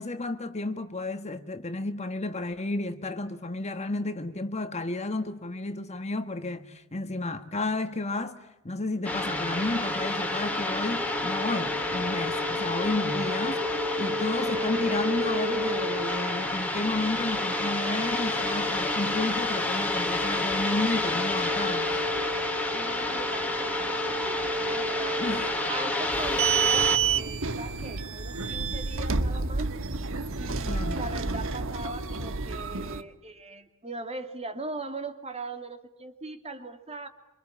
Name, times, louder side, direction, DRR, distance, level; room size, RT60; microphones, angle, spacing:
voice 1, 0.0-8.4 8.6-22.0 25.2-25.5 30.7-31.1, left 2 dB, 30° left, 1.5 m, -32 dB
sound 1, 9.0-27.0, left 2 dB, 5° left, 3.0 m, -28 dB
voice 2, 22.7-25.3 25.7-29.7 30.4-37.1, right 2 dB, 30° right, 2.4 m, -40 dB
sound 2, 26.1-33.0, right 5 dB, 65° right, 1.4 m, -29 dB
27.0 x 25.5 x 8.6 m
head